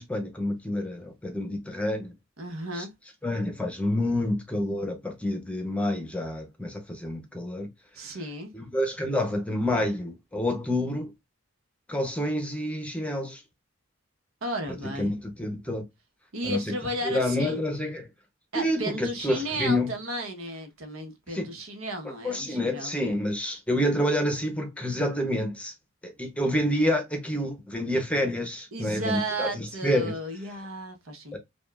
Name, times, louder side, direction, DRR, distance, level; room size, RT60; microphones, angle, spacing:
voice 1, 0.0-2.1 2.7-2.8 3.2-7.7 8.5-11.1 11.9-13.4 14.8-15.8 16.4-16.6 17.0-18.1 18.5-19.9 21.3-21.5 22.2-25.7 26.0-30.2 31.3-31.4, left 1 dB, 5° left, 0.8 m, -28 dB
voice 2, 2.4-2.9 7.9-8.5 14.4-15.1 16.3-17.6 18.5-23.1 28.7-31.4, right 1 dB, 75° right, 1.1 m, -34 dB
5.1 x 2.4 x 2.4 m
head